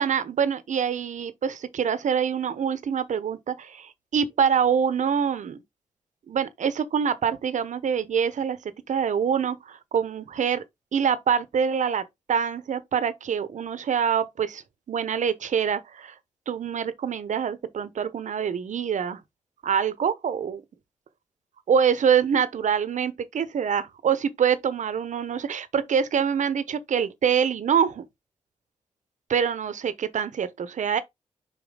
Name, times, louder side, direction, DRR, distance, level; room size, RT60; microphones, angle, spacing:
voice 1, 0.0-5.6 6.3-8.6 8.9-10.6 10.9-16.2 16.5-19.2 19.6-20.6 21.7-28.1 29.3-31.0, right 7 dB, 70° right, 1.0 m, -25 dB
5.7 x 5.3 x 3.8 m
cardioid pair, 60°, 13 cm